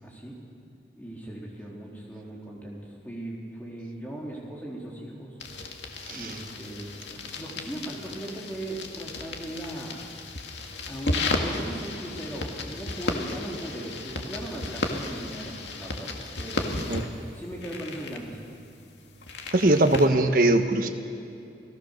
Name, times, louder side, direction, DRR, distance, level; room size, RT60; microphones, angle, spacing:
voice 1, 0.0-0.3 1.0-2.8 3.0-5.4 6.1-7.0 7.3-10.0 10.9-16.1 16.4-16.8 17.3-18.4, right 1 dB, 10° left, -3 dB, 3.8 m, -38 dB
sound 1, 5.4-20.1, left 2 dB, 75° left, 2.2 m, -34 dB
voice 2, 19.5-20.9, right 1 dB, 50° right, 5 dB, 1.5 m, -21 dB
29.0 x 18.5 x 6.7 m, 2.7 s
head